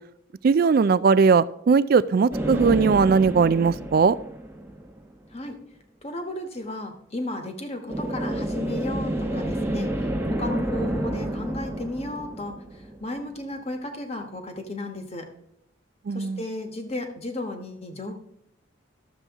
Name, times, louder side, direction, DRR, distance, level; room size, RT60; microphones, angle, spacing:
voice 1, 0.4-4.2 16.1-16.4, right 5 dB, 50° right, 18 dB, 0.3 m, -19 dB
sound 1, 2.3-5.1 7.9-13.3, right 1 dB, 10° right, 1.0 m, -29 dB
voice 2, 6.0-15.3 16.1-18.2, left 1 dB, 30° left, 5 dB, 1.2 m, -34 dB
12.5 x 6.9 x 3.5 m, 0.80 s
head